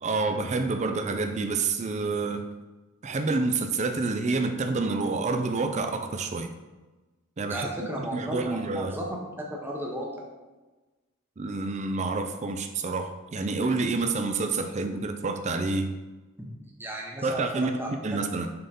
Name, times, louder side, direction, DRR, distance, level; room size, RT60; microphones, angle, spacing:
voice 1, 0.0-2.4 3.0-6.5 7.4-9.0 11.4-15.9 17.2-17.8 18.0-18.5, right 3 dB, 30° right, 7 dB, 0.4 m, -28 dB
voice 2, 7.5-9.0 9.6-10.3 16.4-16.5 16.8-18.2, right 1 dB, 10° right, -2 dB, 0.8 m, -35 dB
6.6 x 3.7 x 4.2 m, 1.2 s
head